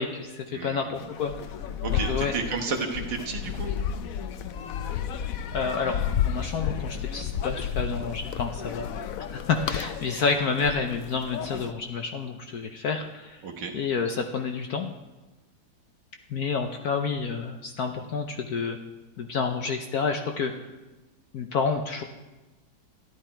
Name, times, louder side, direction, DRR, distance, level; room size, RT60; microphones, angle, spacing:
voice 1, 0.0-1.3 1.9-2.3 5.5-8.9 9.3-13.4 13.7-14.9 16.3-18.8 19.2-20.7 21.3-22.0, left 5 dB, 60° left, 5 dB, 1.0 m, -29 dB
voice 2, 0.5-0.9 1.8-3.7 13.4-13.7, right 5 dB, 65° right, 2 dB, 2.0 m, -32 dB
sound 1, 0.9-11.7, left 8 dB, 80° left, 0.7 m, -32 dB
14.0 x 11.5 x 4.5 m, 1.1 s
omnidirectional pair, 2.2 m